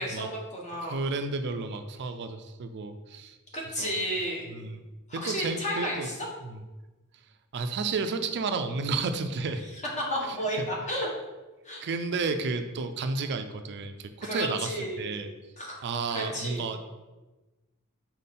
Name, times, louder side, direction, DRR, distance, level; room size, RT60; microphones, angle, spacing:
voice 1, 0.0-0.9 3.5-4.5 5.1-6.3 10.0-11.1 11.6-11.8 14.2-15.1 15.6-15.8 16.1-16.7, equal, 30° left, -2 dB, 1.4 m, -32 dB
voice 2, 0.9-3.4 3.8-3.9 4.5-4.8 5.1-6.1 6.4-6.6 7.5-9.6 10.2-10.7 11.8-15.3 15.8-16.8, right 4 dB, 50° right, 8 dB, 0.4 m, -32 dB
5.4 x 4.4 x 4.2 m, 1.1 s
head